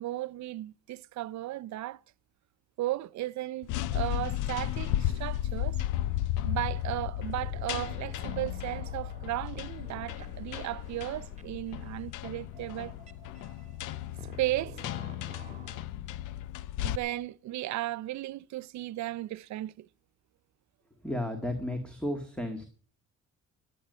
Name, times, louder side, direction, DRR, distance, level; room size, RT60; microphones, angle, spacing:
voice 1, 0.0-2.0 2.8-5.8 6.4-12.9 14.4-14.8 16.8-19.9, right 16 dB, 65° right, 0.5 m, -35 dB
sound 1, 3.6-17.0, left 13 dB, 85° left, 0.7 m, -34 dB
sound 2, 7.2-15.8, right 4 dB, 25° right, 2.2 m, -51 dB
voice 2, 21.0-22.7, left 1 dB, 5° left, 1.9 m, -33 dB
15.0 x 9.4 x 6.7 m
cardioid pair, 90°, 30 cm